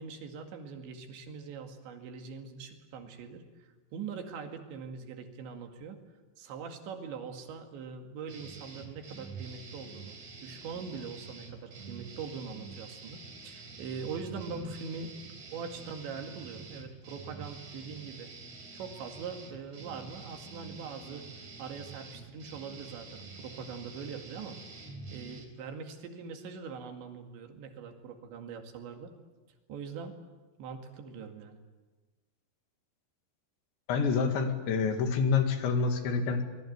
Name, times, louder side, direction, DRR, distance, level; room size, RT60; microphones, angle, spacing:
voice 1, 0.0-6.0 6.4-15.1 15.5-18.3 18.7-21.2 21.6-24.6 25.1-29.1 29.7-30.2 30.6-31.6, right 5 dB, 75° right, 5 dB, 4.4 m, -42 dB
sound 1, 8.3-25.5, right 4 dB, 40° right, 5.0 m, -47 dB
voice 2, 33.9-36.4, left 5 dB, 75° left, 6 dB, 4.5 m, -27 dB
25.0 x 21.5 x 9.5 m, 1.3 s
omnidirectional pair, 5.2 m